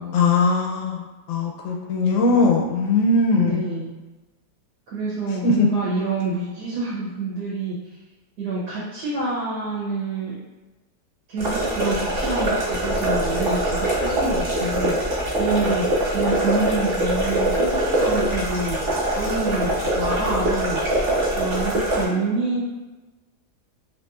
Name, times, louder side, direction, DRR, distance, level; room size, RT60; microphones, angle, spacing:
voice 1, 0.1-3.6 5.4-5.7, left 3 dB, 85° left, 0 dB, 1.2 m, -20 dB
voice 2, 3.3-4.0 4.9-7.8 8.4-10.4 11.3-15.0 15.4-15.9 16.1-18.8 19.1-20.8 21.3-22.6, right 2 dB, 80° right, -7 dB, 1.3 m, -27 dB
sound 1, 11.4-22.0, right 1 dB, 45° right, 1.0 m, -23 dB
3.0 x 2.9 x 2.3 m, 1.1 s
omnidirectional pair, 1.7 m